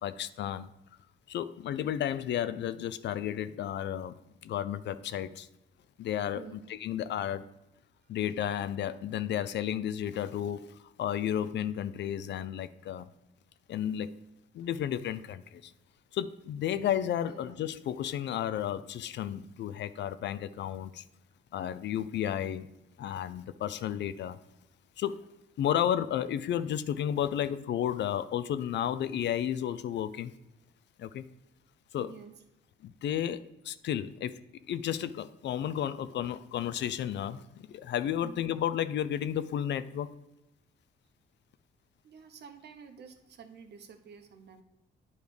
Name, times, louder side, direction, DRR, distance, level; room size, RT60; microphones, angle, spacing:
voice 1, 0.0-0.7 1.3-4.1 4.4-5.5 6.0-7.4 8.1-10.6 11.0-13.1 13.7-14.1 14.5-15.7 16.1-21.0 21.5-22.7 23.0-24.4 25.0-25.2 25.6-30.3 31.0-31.2 31.9-32.1 32.8-34.4 34.7-40.1, left 10 dB, 65° left, 14 dB, 0.5 m, -32 dB
voice 2, 32.0-32.3 38.2-38.4 42.0-44.6, right 6 dB, 55° right, 7 dB, 1.0 m, -49 dB
9.3 x 3.2 x 5.1 m, 0.93 s
cardioid pair, 90°, 20 cm